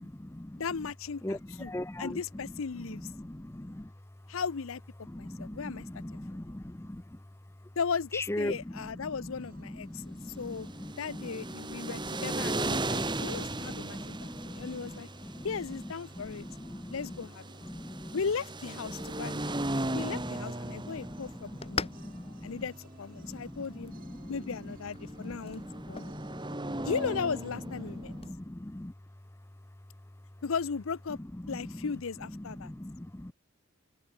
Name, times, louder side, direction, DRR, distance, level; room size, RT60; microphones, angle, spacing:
voice 1, 0.0-0.6 1.2-2.2 3.0-3.9 5.1-7.0 8.1-8.6 9.7-15.0 15.3-15.5 16.2-16.9 17.6-18.2 19.0-20.0 20.7-22.6 23.2-24.3 25.2-26.9 28.1-28.9 31.4-31.6 32.6-33.3, left 1 dB, 10° left, 0.6 m, -41 dB
voice 2, 0.6-1.7 2.0-3.1 4.3-4.8 5.2-5.9 6.1-6.2 7.8-10.7 11.0-15.1 15.4-16.5 16.9-17.4 18.1-19.6 19.9-21.9 22.4-23.9 24.3-25.6 25.9-26.2 26.8-28.1 30.4-31.2 31.5-32.7, left 5 dB, 75° left, 0.6 m, -36 dB
sound 1, 9.4-28.5, right 1 dB, 40° right, 3.7 m, -60 dB
sound 2, 10.4-28.3, right 2 dB, 20° right, 1.7 m, -38 dB
sound 3, 21.4-28.4, left 5 dB, 25° left, 1.4 m, -45 dB
head